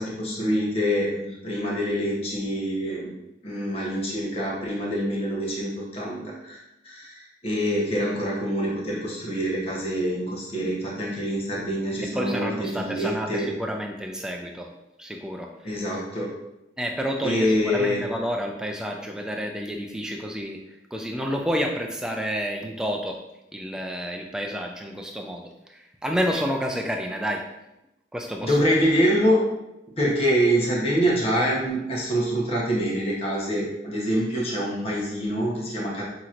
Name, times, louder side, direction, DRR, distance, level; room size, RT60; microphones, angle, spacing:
voice 1, 0.0-3.1 3.4-6.6 6.8-13.5 15.6-16.3 17.2-18.0 28.4-29.4 30.0-36.0, equal, 30° left, -4 dB, 0.9 m, -25 dB
voice 2, 12.1-15.8 16.8-20.6 20.9-23.2 23.5-27.4 28.1-28.6, equal, 5° right, 2 dB, 0.3 m, -30 dB
5.8 x 2.9 x 2.5 m, 0.91 s
head